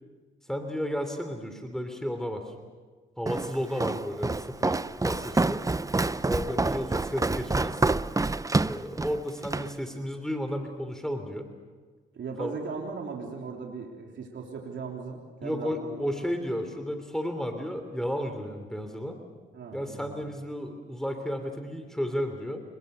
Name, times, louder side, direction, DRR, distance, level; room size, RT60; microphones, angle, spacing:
voice 1, 0.5-2.5 3.2-4.8 5.0-5.6 6.3-7.9 8.6-11.5 12.4-12.5 15.4-19.2 19.7-22.6, equal, ahead, 6 dB, 3.2 m, -33 dB
Walk footsteps, 3.3-9.7, right 3 dB, 15° right, 0.7 m, -28 dB
voice 2, 12.1-16.0 19.5-20.3, right 5 dB, 65° right, 0 dB, 3.4 m, -38 dB
26.0 x 22.0 x 6.8 m, 1.5 s
supercardioid pair, 60°, 20 cm